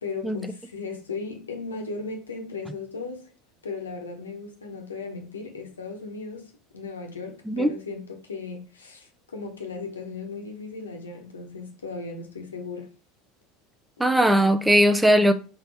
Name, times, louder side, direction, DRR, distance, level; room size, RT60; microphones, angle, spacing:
voice 1, 0.0-3.3 3.6-12.9, left 4 dB, 85° left, 0.8 m, -36 dB
voice 2, 14.0-15.3, equal, 5° right, 0.5 m, -19 dB
4.2 x 2.9 x 3.4 m
figure-of-eight pair, 75°, 0 cm